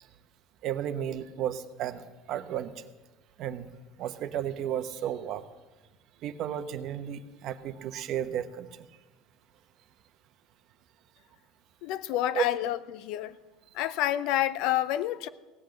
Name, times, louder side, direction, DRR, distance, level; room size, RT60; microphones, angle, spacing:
voice 1, 0.6-2.0 2.3-2.9 3.4-3.7 4.0-5.4 6.2-8.9 12.3-12.5, right 10 dB, 55° right, 0.9 m, -33 dB
voice 2, 11.8-13.4 13.7-15.3, left 13 dB, 70° left, 0.6 m, -28 dB
17.0 x 8.4 x 7.8 m
cardioid pair, 135°, 0 cm